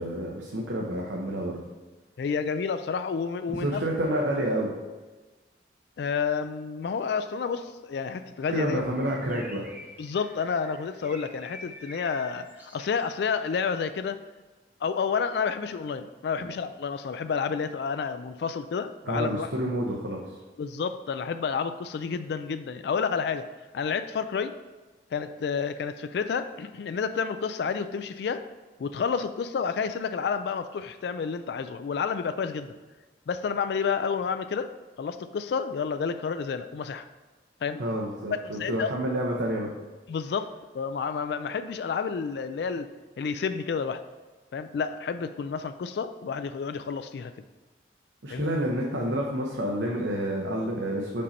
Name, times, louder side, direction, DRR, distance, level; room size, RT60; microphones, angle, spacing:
voice 1, 0.0-1.6 3.5-4.7 8.5-9.6 16.4-16.5 19.1-20.3 37.8-39.7 48.2-51.2, right 1 dB, 85° right, -1 dB, 0.8 m, -29 dB
voice 2, 2.2-3.8 6.0-8.8 10.0-14.2 14.8-19.5 20.6-23.5 23.7-24.5 25.1-28.4 28.8-32.7 33.3-34.7 35.0-37.0 37.6-37.8 38.6-38.9 40.1-42.9 43.2-44.0 44.5-47.3 48.3-48.5, left 6 dB, 65° left, 10 dB, 0.3 m, -30 dB
Bird, 8.5-13.5, equal, 10° right, 0.6 m, -48 dB
5.3 x 5.2 x 4.2 m, 1.3 s
head